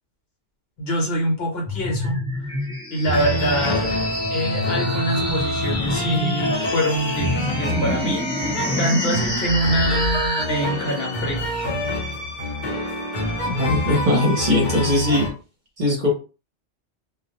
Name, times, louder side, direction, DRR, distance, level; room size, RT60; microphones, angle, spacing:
voice 1, 0.8-2.2 2.9-3.9 4.3-11.4, equal, 65° left, 0 dB, 1.1 m, -25 dB
sound 1, 1.7-10.4, left 1 dB, 5° left, 0.5 m, -27 dB
sound 2, 3.0-15.3, left 1 dB, 50° left, 0.8 m, -26 dB
voice 2, 13.4-15.3 15.8-16.1, left 1 dB, 45° right, -1 dB, 0.8 m, -20 dB
2.4 x 2.0 x 2.8 m, 0.33 s
omnidirectional pair, 1.2 m